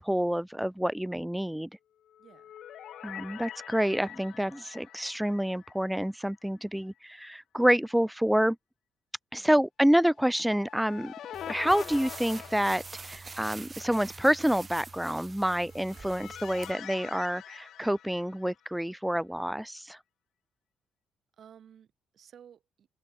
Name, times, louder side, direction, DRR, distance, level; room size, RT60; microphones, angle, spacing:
voice 1, 0.0-1.7 3.0-8.6 9.3-11.1 11.5-20.0, equal, 5° right, 0.4 m, -28 dB
sound 1, 2.1-6.4 6.6-6.7 10.3-13.4 15.4-18.8, left 11 dB, 70° left, 0.6 m, -45 dB
voice 2, 2.2-2.5 9.4-9.6 21.4-22.9, right 8 dB, 60° right, 5.2 m, -55 dB
sound 2, 11.3-16.7, right 4 dB, 30° right, 1.8 m, -45 dB
open air
cardioid pair, 90°, 0 cm